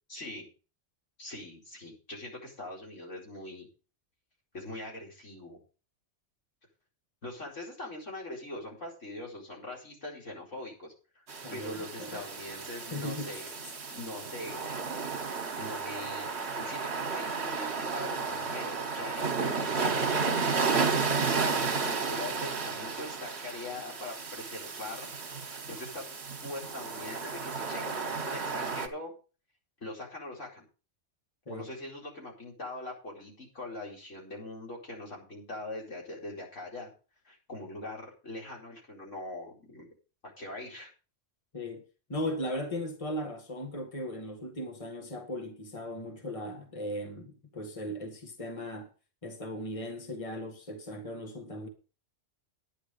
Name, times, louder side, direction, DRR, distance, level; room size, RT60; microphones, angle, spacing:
voice 1, 0.1-0.5 1.2-3.7 4.5-5.6 7.2-11.2 11.5-13.5 13.9-14.6 15.6-16.3 16.5-21.0 21.3-25.1 25.5-29.1 29.8-30.6 31.5-36.9 37.2-39.9 40.4-40.9, left 2 dB, 90° left, 4.9 m, -42 dB
sound 1, 11.3-28.9, right 5 dB, 60° right, 1.8 m, -33 dB
voice 2, 11.4-12.3 12.9-13.4 31.5-31.7 41.5-41.8 42.1-48.9 49.2-51.7, left 1 dB, 30° left, 2.0 m, -37 dB
10.0 x 10.0 x 5.0 m
omnidirectional pair, 1.2 m